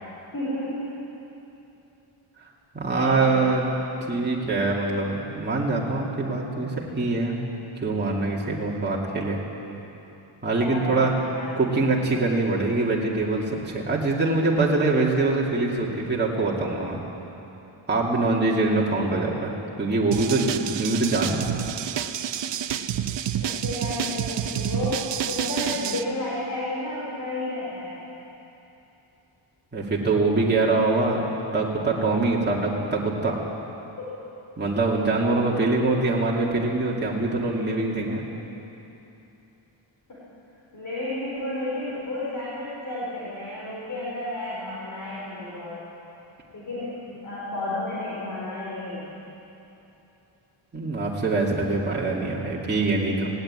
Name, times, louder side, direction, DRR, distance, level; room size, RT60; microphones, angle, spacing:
voice 1, 0.3-1.0 2.9-3.5 10.6-11.6 23.4-28.0 34.0-34.1 40.1-40.3 40.7-45.8 46.5-49.0, left 1 dB, 40° left, -7 dB, 4.2 m, -32 dB
voice 2, 2.7-3.7 4.1-7.4 7.8-9.4 10.4-11.1 11.6-17.0 17.9-21.4 29.7-31.2 31.5-33.4 34.6-38.2 50.7-53.3, right 3 dB, 20° right, -4 dB, 2.4 m, -24 dB
sound 1, 20.1-26.0, right 10 dB, 60° right, 0.8 m, -29 dB
19.5 x 18.0 x 8.9 m, 3.0 s
wide cardioid pair, 180°, 50 cm